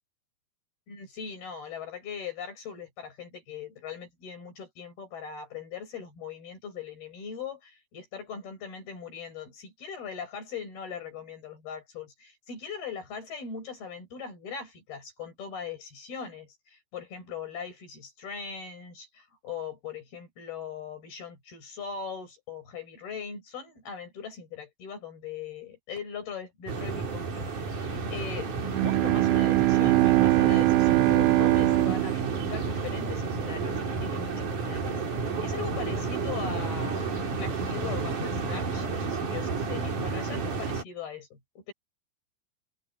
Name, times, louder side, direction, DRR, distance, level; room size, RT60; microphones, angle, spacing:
voice 1, 0.9-41.7, left 6 dB, 70° left, 8.9 m, -40 dB
sound 1, 26.7-40.8, right 4 dB, 55° right, 5.4 m, -31 dB
Bowed string instrument, 28.6-33.5, right 17 dB, 80° right, 2.4 m, -23 dB
open air
omnidirectional pair, 4.5 m